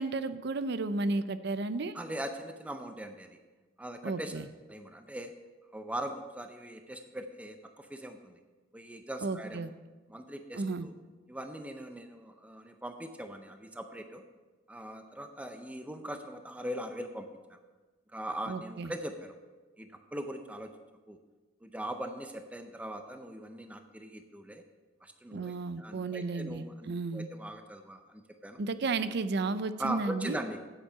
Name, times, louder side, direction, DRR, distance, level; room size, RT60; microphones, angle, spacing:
voice 1, 0.0-2.0 4.0-4.4 9.2-9.7 10.5-10.9 18.5-18.9 25.3-27.3 28.6-30.4, right 3 dB, 60° right, 13 dB, 0.5 m, -33 dB
voice 2, 1.9-3.4 3.8-5.3 5.7-8.4 8.7-9.7 10.1-10.9 11.3-14.2 14.7-17.6 18.1-19.3 19.8-20.7 21.1-21.2 21.6-24.6 25.0-28.6 29.8-30.6, right 1 dB, 5° right, 6 dB, 0.5 m, -41 dB
8.9 x 8.2 x 5.5 m, 1.3 s
head